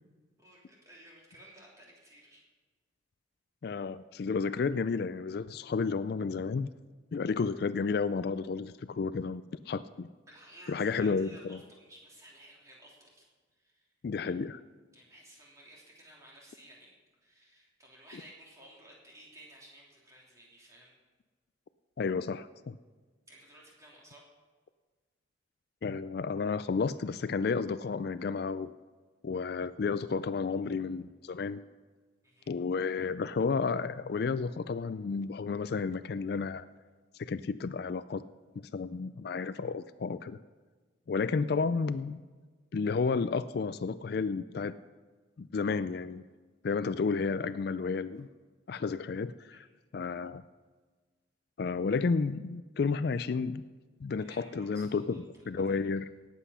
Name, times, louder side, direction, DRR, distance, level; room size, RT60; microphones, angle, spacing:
voice 1, 0.4-2.4 10.3-13.2 13.6-13.9 14.9-16.9 17.2-20.9 23.3-24.3 32.2-32.5 49.5-49.6 54.2-55.2 55.7-55.8, right 1 dB, 15° right, -3 dB, 3.0 m, -55 dB
voice 2, 3.6-6.7 7.1-10.1 10.7-11.6 14.0-14.6 22.0-22.8 25.8-28.7 29.2-31.6 32.5-36.7 37.2-38.2 38.6-40.4 41.1-42.2 42.7-44.8 45.4-46.2 46.6-48.3 48.7-49.7 49.9-50.4 51.6-53.6 54.0-56.1, left 4 dB, 55° left, 14 dB, 0.3 m, -32 dB
18.0 x 8.1 x 5.6 m, 1.4 s
head